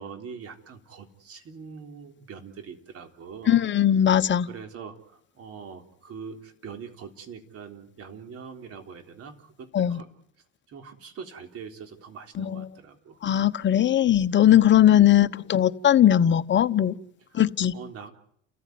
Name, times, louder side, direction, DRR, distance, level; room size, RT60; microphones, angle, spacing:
voice 1, 0.0-3.7 4.5-10.1 10.7-13.2 15.0-15.2 17.3-17.4 17.7-18.1, right 6 dB, 50° right, 5 dB, 3.8 m, -43 dB
voice 2, 3.5-4.5 9.7-10.0 12.4-12.6 13.2-16.9 17.3-17.7, left 11 dB, 40° left, 11 dB, 1.1 m, -19 dB
30.0 x 14.5 x 9.5 m, 0.70 s
supercardioid pair, 100°, 29 cm